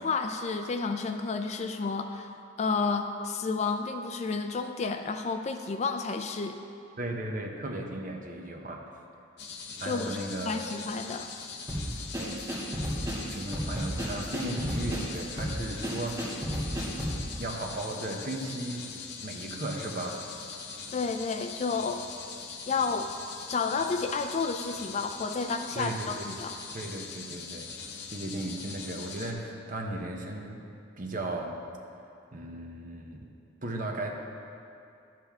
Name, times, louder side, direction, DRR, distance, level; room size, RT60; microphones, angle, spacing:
voice 1, 0.0-2.3 2.6-6.6 9.8-10.2 10.4-11.3 20.9-22.0 22.7-23.1 23.5-26.6, left 4 dB, 35° left, 6 dB, 0.3 m, -31 dB
voice 2, 7.0-8.8 9.8-10.6 12.2-12.4 13.0-16.3 17.4-18.9 19.2-20.3 25.7-26.4 26.7-27.7 28.1-30.6 31.0-31.6 32.3-33.3 33.6-34.1, right 1 dB, 40° right, 1 dB, 0.9 m, -36 dB
sound 1, 9.4-29.3, left 5 dB, 55° left, 0.8 m, -42 dB
sound 2, 11.7-17.2, equal, 20° right, 2.4 m, -32 dB
11.5 x 7.5 x 3.6 m, 2.6 s
head